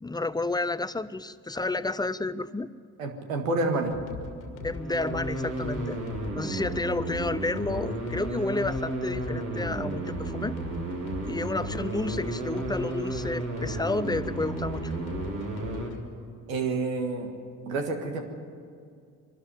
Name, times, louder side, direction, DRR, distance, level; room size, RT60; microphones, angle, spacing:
voice 1, 0.0-2.7 4.6-6.0 6.3-10.6 11.3-14.9, left 2 dB, 10° left, 15 dB, 0.7 m, -31 dB
voice 2, 3.0-4.0 16.5-17.3 17.7-18.2, right 3 dB, 85° right, 4 dB, 1.8 m, -28 dB
sound 1, 3.8-16.0, left 3 dB, 85° left, 2.1 m, -41 dB
sound 2, 4.5-15.9, right 2 dB, 50° right, 4.4 m, -33 dB
23.5 x 12.5 x 9.8 m, 2.3 s
hypercardioid pair, 50°, 40 cm